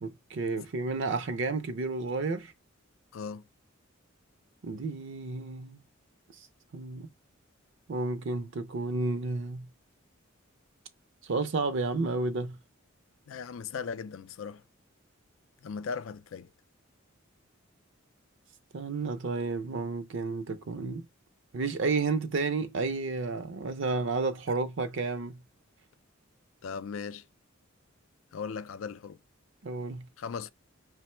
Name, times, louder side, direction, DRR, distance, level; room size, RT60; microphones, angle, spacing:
voice 1, 0.0-2.5 4.6-5.8 6.7-7.1 7.9-9.7 11.2-12.6 18.7-21.0 21.5-25.4 29.6-30.1, right 3 dB, 60° right, 0.5 m, -31 dB
voice 2, 3.1-3.4 13.3-14.6 15.6-16.5 26.6-27.2 28.3-29.2 30.2-30.5, left 6 dB, 70° left, 0.4 m, -38 dB
5.0 x 2.0 x 4.3 m
head